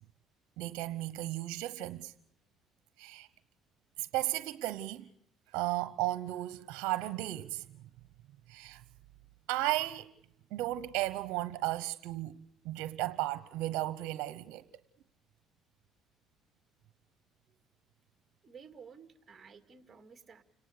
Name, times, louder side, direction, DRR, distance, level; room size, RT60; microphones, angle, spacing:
voice 1, 0.6-2.1 3.0-3.3 4.0-5.1 5.5-7.7 8.5-8.8 9.5-10.1 10.5-14.6, right 16 dB, 80° right, 0.9 m, -35 dB
voice 2, 18.4-20.4, right 6 dB, 30° right, 2.3 m, -53 dB
30.0 x 18.5 x 6.7 m
supercardioid pair, 85°, 0 cm